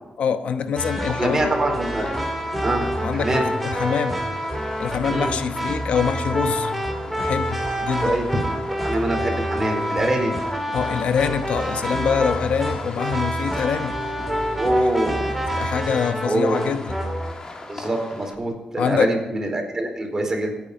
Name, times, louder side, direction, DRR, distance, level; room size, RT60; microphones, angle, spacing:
voice 1, 0.2-1.5 3.0-4.2 4.8-6.7 7.2-8.2 10.7-13.9 14.6-14.9 15.5-17.0 18.8-19.1, left 7 dB, 85° left, 9 dB, 1.0 m, -25 dB
sound 1, 0.8-17.3, equal, ahead, 2.6 m, -27 dB
Fireworks, 1.1-18.3, left 2 dB, 35° left, 2.5 m, -38 dB
voice 2, 1.2-2.1 2.6-2.9 3.1-3.5 5.1-5.3 8.0-8.4 8.8-10.4 14.6-15.3 16.3-16.6 17.7-20.5, right 1 dB, 25° right, 2 dB, 4.3 m, -24 dB
26.5 x 9.7 x 5.0 m, 1.0 s
wide cardioid pair, 115°, 2 cm